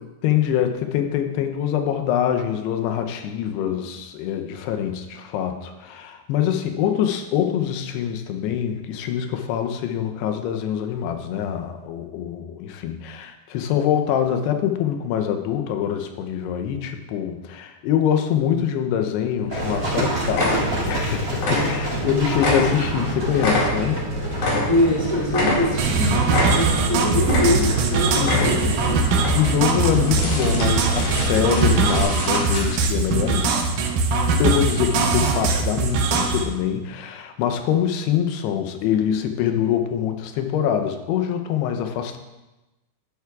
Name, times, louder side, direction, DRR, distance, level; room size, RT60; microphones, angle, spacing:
voice 1, 0.2-24.1 28.2-28.7 29.4-33.6 34.4-42.2, left 9 dB, 90° left, 6 dB, 2.8 m, -24 dB
sound 1, 19.4-19.5 19.8-20.0 20.3-21.1 21.3-22.1 22.4-25.0 25.3-26.0 26.3-26.9 27.2-27.9 28.2-28.8 29.2-29.3 29.8-32.8, left 2 dB, 55° left, 3.2 m, -26 dB
Livestock farm animals working animals, 19.5-32.0, right 1 dB, 25° right, 2.0 m, -27 dB
voice 2, 22.0-22.8 24.6-29.0, left 1 dB, 10° left, -6 dB, 1.1 m, -24 dB
sound 2, 25.8-36.4, right 4 dB, 80° right, 1.8 m, -21 dB
11.0 x 10.5 x 2.4 m, 1.0 s
omnidirectional pair, 4.6 m